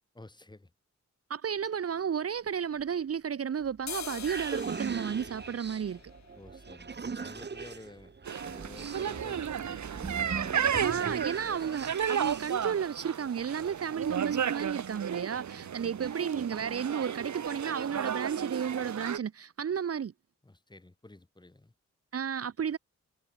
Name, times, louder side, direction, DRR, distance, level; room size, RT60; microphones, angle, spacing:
voice 1, 0.1-0.7 6.3-10.1 15.5-15.7 20.4-21.7, left 2 dB, 15° left, 5.1 m, -51 dB
voice 2, 1.3-6.1 10.8-20.1 22.1-22.8, right 7 dB, 55° right, 1.0 m, -33 dB
sound 1, 2.3-3.3 3.7-11.4 11.7-11.8 12.1-12.6 12.9-13.2 13.4-13.7 13.9-14.7 15.0-15.2 15.6-15.7 16.0-16.1, left 7 dB, 65° left, 4.1 m, -48 dB
sound 2, 3.6-12.7, right 5 dB, 35° right, 1.9 m, -40 dB
sound 3, 8.3-19.2, right 8 dB, 70° right, 2.4 m, -33 dB
wide cardioid pair, 145°, 29 cm